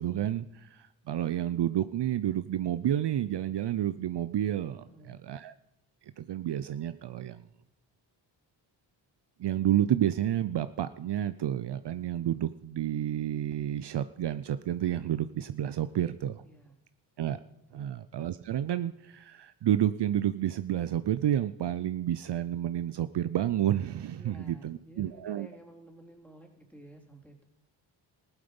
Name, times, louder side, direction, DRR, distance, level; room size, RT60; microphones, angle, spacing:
voice 1, 0.0-5.5 6.0-7.4 9.4-16.4 17.2-17.4 17.7-25.5, right 11 dB, 60° right, 12 dB, 0.7 m, -30 dB
voice 2, 4.8-5.2 16.4-16.8 17.7-17.9 24.1-27.4, right 1 dB, 5° left, 1 dB, 3.6 m, -53 dB
15.0 x 11.5 x 5.4 m, 0.82 s
cardioid pair, 55°, 47 cm